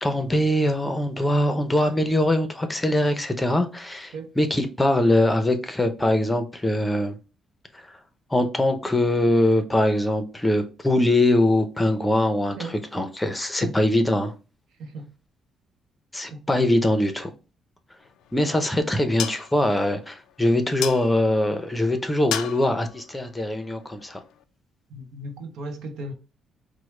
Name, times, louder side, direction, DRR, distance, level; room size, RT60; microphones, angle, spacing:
voice 1, 0.0-7.2 7.7-8.0 8.3-14.3 16.1-17.3 18.3-24.2, left 1 dB, 10° left, 0.6 m, -22 dB
sound 1, 18.0-24.4, left 10 dB, 85° left, 0.3 m, -37 dB
voice 2, 24.9-26.1, right 2 dB, 80° right, 0.7 m, -36 dB
4.5 x 2.1 x 3.1 m
cardioid pair, 90°, 0 cm